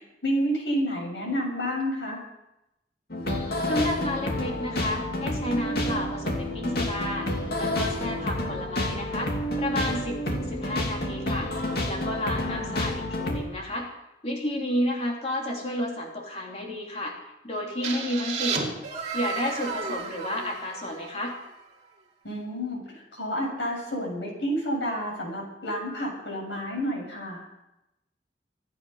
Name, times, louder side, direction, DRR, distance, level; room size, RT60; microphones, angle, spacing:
voice 1, 0.0-2.2 12.4-12.8 22.2-27.4, equal, 80° left, -2 dB, 7.4 m, -30 dB
sound 1, 3.1-13.4, left 1 dB, 60° left, 2.8 m, -29 dB
voice 2, 3.7-7.3 7.6-9.3 9.6-11.5 11.8-13.9 14.2-17.2 17.4-18.7 19.1-21.4, left 1 dB, 35° left, 0 dB, 3.3 m, -31 dB
sound 2, 17.8-21.6, right 5 dB, 40° right, 2.6 m, -33 dB
24.5 x 10.0 x 5.7 m, 0.90 s
head